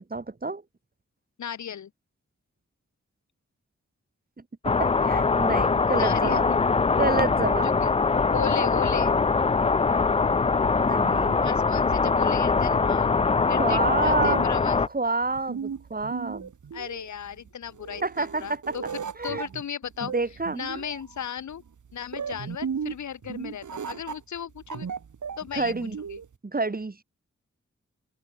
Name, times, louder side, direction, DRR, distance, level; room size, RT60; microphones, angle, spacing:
voice 1, 0.1-0.6 4.6-6.5 6.9-7.7 10.8-11.4 13.6-14.5 14.9-16.5 18.0-18.8 19.2-19.4 20.0-20.6 25.5-26.0 26.4-27.0, right 3 dB, 30° right, 1.4 m, -28 dB
voice 2, 1.4-1.9 5.9-6.6 7.6-7.9 8.3-9.1 11.4-13.1 13.5-14.8 16.7-20.1 20.5-21.6 21.9-24.9 25.4-25.7 26.1-26.2, left 8 dB, 75° left, 0.7 m, -36 dB
sound 1, 4.6-14.9, left 4 dB, 20° left, 0.4 m, -22 dB
sound 2, 13.8-26.3, right 6 dB, 85° right, 2.6 m, -36 dB
open air
cardioid pair, 50°, 29 cm